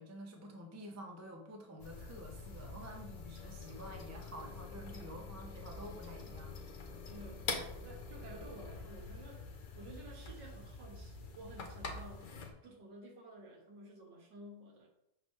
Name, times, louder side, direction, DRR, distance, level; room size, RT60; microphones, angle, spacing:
voice 1, 0.0-6.6, equal, 20° right, 1 dB, 0.4 m, -49 dB
sound 1, 1.8-12.5, left 3 dB, 60° left, 0.5 m, -46 dB
voice 2, 7.1-9.4 9.8-12.3 12.6-14.9, right 1 dB, 80° right, 0 dB, 2.0 m, -52 dB
6.1 x 5.6 x 3.2 m, 0.81 s
omnidirectional pair, 1.9 m